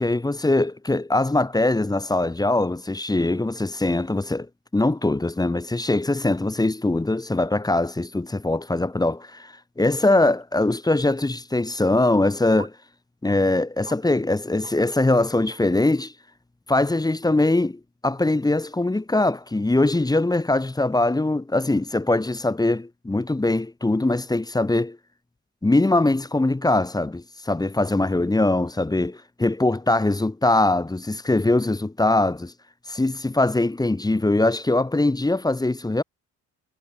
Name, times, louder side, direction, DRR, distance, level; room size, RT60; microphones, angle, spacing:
voice 1, 0.0-4.5 4.7-12.7 13.2-16.1 16.7-25.0 25.6-32.5 32.9-36.0, left 2 dB, 15° left, 1.5 m, -22 dB
sound 1, 10.4-10.5 12.6-12.7 13.2-13.3 13.8-14.0 14.6-14.7 15.0-15.1 15.5-15.7, right 3 dB, 20° right, 2.1 m, -43 dB
cardioid pair, 90°, 30 cm